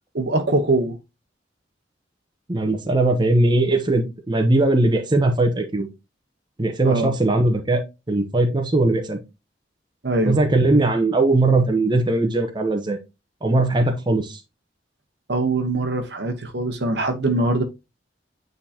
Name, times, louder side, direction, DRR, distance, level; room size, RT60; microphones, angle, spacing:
voice 1, 0.1-1.0 6.8-7.1 10.0-10.4 15.3-17.6, right 2 dB, 65° right, 1.1 m, -22 dB
voice 2, 2.5-5.9 6.6-7.8 8.1-9.2 10.2-13.0 13.4-14.4, right 2 dB, 25° right, 0.9 m, -19 dB
8.6 x 4.0 x 2.8 m
head